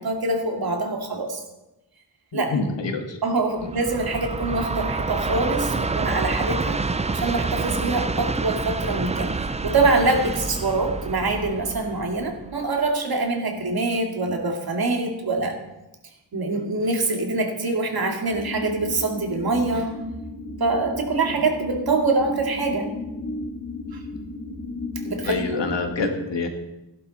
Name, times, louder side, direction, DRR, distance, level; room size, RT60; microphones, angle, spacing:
voice 1, 0.0-1.4 2.3-2.5 3.2-15.6 16.3-19.9 20.6-22.9 23.9-24.0 25.0-25.5 26.0-26.1, right 3 dB, 55° right, 2 dB, 2.3 m, -24 dB
voice 2, 2.3-3.2 24.1-24.2 25.2-26.5, left 4 dB, 80° left, 3 dB, 2.0 m, -26 dB
Train, 3.6-12.8, right 3 dB, 15° right, 0.4 m, -28 dB
sound 1, 18.3-25.8, left 2 dB, 45° left, 4.1 m, -34 dB
16.0 x 11.0 x 4.1 m, 0.98 s
wide cardioid pair, 145°, 43 cm